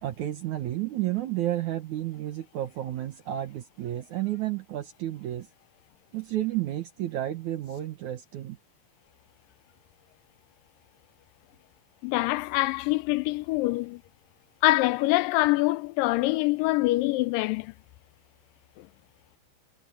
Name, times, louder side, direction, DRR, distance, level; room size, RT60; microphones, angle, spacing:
voice 1, 0.0-5.5 6.1-8.6, right 13 dB, 65° right, 2.3 m, -31 dB
voice 2, 12.0-14.0 14.6-17.7 18.8-18.9, left 19 dB, 80° left, 2.2 m, -25 dB
omnidirectional pair, 4.1 m